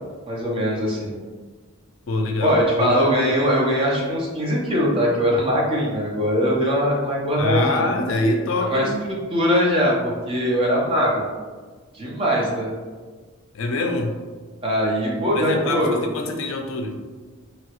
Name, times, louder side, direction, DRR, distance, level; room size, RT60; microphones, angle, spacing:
voice 1, 0.3-1.1 2.4-7.9 8.7-8.9 9.3-11.2 11.9-12.7 14.6-16.0, equal, 25° right, -4 dB, 0.6 m, -21 dB
voice 2, 2.1-3.0 7.4-9.0 13.5-14.2 15.3-17.0, left 2 dB, 65° left, 4 dB, 0.4 m, -24 dB
2.9 x 2.4 x 2.9 m, 1.4 s
head